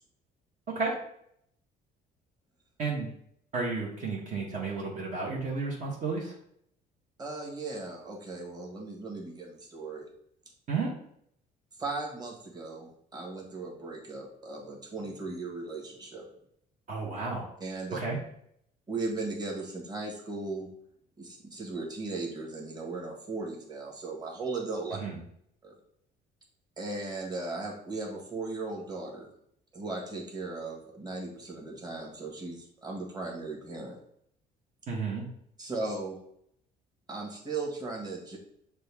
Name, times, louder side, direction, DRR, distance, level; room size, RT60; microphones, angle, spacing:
voice 1, 3.5-6.3 10.7-10.9 16.9-17.5 17.9-18.2 25.0-25.1 34.9-35.2, right 4 dB, 50° right, -3 dB, 1.1 m, -32 dB
voice 2, 7.2-10.1 11.8-16.3 17.6-18.0 18.9-20.7 21.2-25.0 25.6-25.8 26.8-29.3 29.7-34.0 35.6-36.2 37.1-38.4, right 3 dB, 25° right, -2 dB, 1.4 m, -37 dB
6.7 x 2.3 x 3.4 m, 0.70 s
cardioid pair, 110°, 17 cm